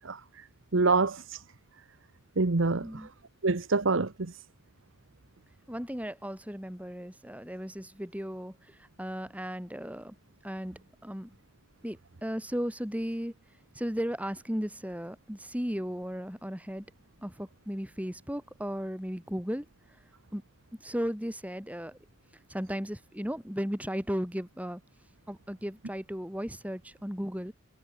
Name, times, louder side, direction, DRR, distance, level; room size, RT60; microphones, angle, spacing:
voice 1, 0.7-1.4 2.4-2.9 3.4-4.3, right 3 dB, 65° right, 1.0 m, -25 dB
voice 2, 5.7-10.2 10.4-11.4 11.8-13.3 13.7-16.9 17.2-19.7 20.3-20.4 20.8-22.0 22.5-24.8 25.3-27.5, equal, 5° right, 5.2 m, -35 dB
head